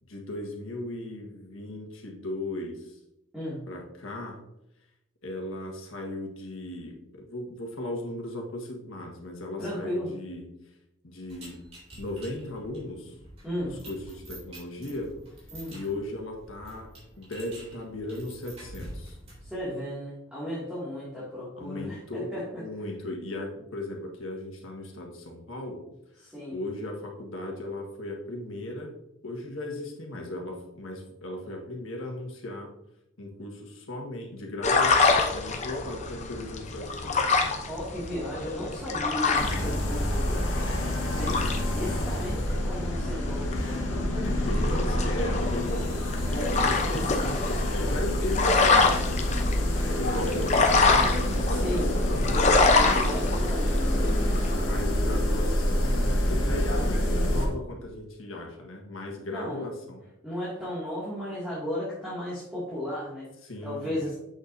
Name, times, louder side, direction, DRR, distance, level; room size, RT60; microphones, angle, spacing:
voice 1, 0.0-3.0 3.7-4.4 5.2-10.5 11.0-11.7 12.0-13.2 13.6-15.2 15.7-19.2 21.6-25.8 26.5-28.9 29.2-32.7 33.2-37.2 41.1-42.0 44.2-46.1 46.3-52.4 52.8-53.2 54.5-60.1 63.4-64.1, left 1 dB, 90° left, 1 dB, 1.5 m, -37 dB
voice 2, 9.6-10.1 13.4-13.8 15.5-15.8 19.4-22.4 26.2-26.6 37.7-40.5 41.1-44.5 46.3-46.5 51.4-51.9 52.3-54.7 56.7-56.9 59.3-59.6 60.2-63.3 63.6-64.1, left 1 dB, 5° right, -10 dB, 2.2 m, -35 dB
sound 1, 11.3-19.6, right 1 dB, 30° right, 2.5 m, -47 dB
sound 2, 34.6-54.5, left 3 dB, 35° left, 0.7 m, -27 dB
sound 3, 39.3-57.5, left 1 dB, 70° left, 1.6 m, -27 dB
7.9 x 6.7 x 2.7 m, 0.85 s
head